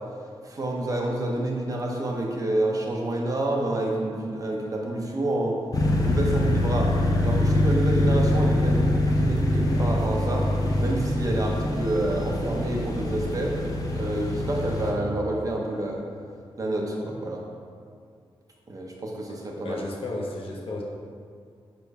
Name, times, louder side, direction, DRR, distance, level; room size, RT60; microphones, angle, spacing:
voice 1, 0.4-5.6 5.8-6.9 7.2-10.5 10.8-13.5 13.9-16.0 16.6-17.4 18.7-19.8, right 1 dB, 35° right, -1 dB, 0.9 m, -28 dB
sound 1, 5.7-14.9, left 1 dB, 35° left, 0.8 m, -24 dB
voice 2, 19.6-20.8, left 2 dB, 65° left, -2 dB, 1.1 m, -33 dB
5.4 x 5.3 x 4.7 m, 2.2 s
wide cardioid pair, 160°, 10 cm